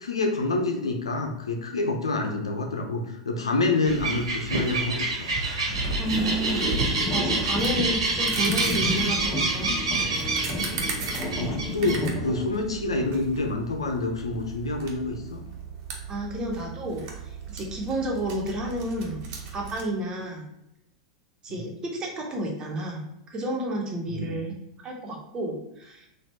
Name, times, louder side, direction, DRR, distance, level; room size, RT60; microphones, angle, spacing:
voice 1, 0.0-5.3 10.9-15.4 24.1-24.3, left 2 dB, 85° left, 3 dB, 0.7 m, -27 dB
sound 1, 3.8-12.0, right 3 dB, 80° right, 1.4 m, -27 dB
sound 2, 6.0-12.5, left 1 dB, 10° left, 0.8 m, -31 dB
voice 2, 6.0-9.9 16.1-19.2 19.5-20.4 21.4-23.0 23.3-24.5 24.8-26.1, right 1 dB, 30° right, 0 dB, 1.3 m, -31 dB
sound 3, 7.6-19.8, right 5 dB, 50° right, 1.2 m, -38 dB
4.3 x 2.7 x 4.2 m, 0.82 s
hypercardioid pair, 95°, 3 cm